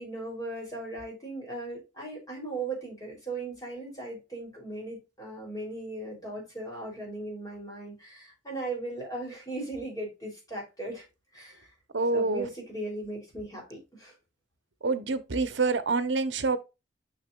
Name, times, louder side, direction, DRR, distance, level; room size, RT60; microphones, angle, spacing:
voice 1, 0.0-11.0 11.3-11.7 12.1-14.1, right 2 dB, 20° left, 3.2 m, -38 dB
voice 2, 11.9-12.5 14.8-16.6, right 3 dB, 70° right, 0.8 m, -26 dB
6.6 x 6.1 x 2.3 m
head